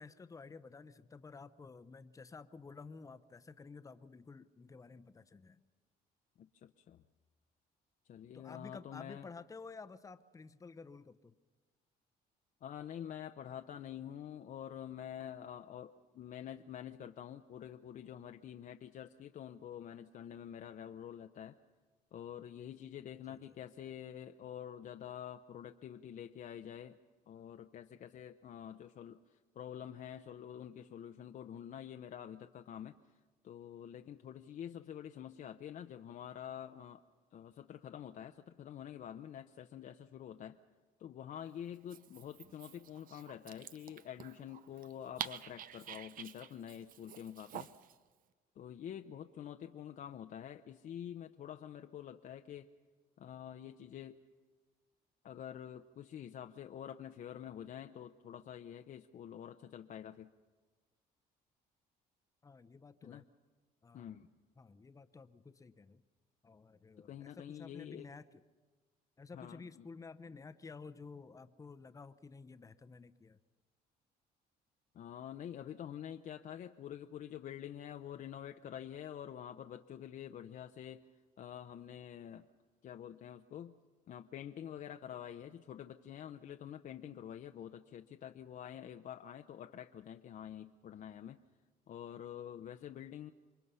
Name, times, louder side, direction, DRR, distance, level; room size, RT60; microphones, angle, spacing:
voice 1, 0.0-5.6 8.3-11.3 23.3-23.6 62.4-63.2 63.8-64.2 64.6-66.0 66.4-68.2 69.2-73.4, left 4 dB, 20° left, 10 dB, 0.8 m, -52 dB
voice 2, 6.4-7.0 8.1-9.3 12.6-21.6 22.1-27.0 27.3-33.0 33.4-37.0 37.3-40.6 41.0-47.7 48.6-52.7 53.2-54.2 55.2-60.3 63.0-63.2 63.9-64.3 67.0-68.1 69.3-69.9 74.9-81.0 81.4-82.5 82.8-83.7 84.1-91.4 91.9-93.3, left 10 dB, 50° left, 6 dB, 0.7 m, -47 dB
Dog, 41.7-48.0, right 10 dB, 55° right, 0.7 m, -48 dB
27.0 x 22.5 x 5.6 m, 1.4 s
cardioid pair, 110°, 17 cm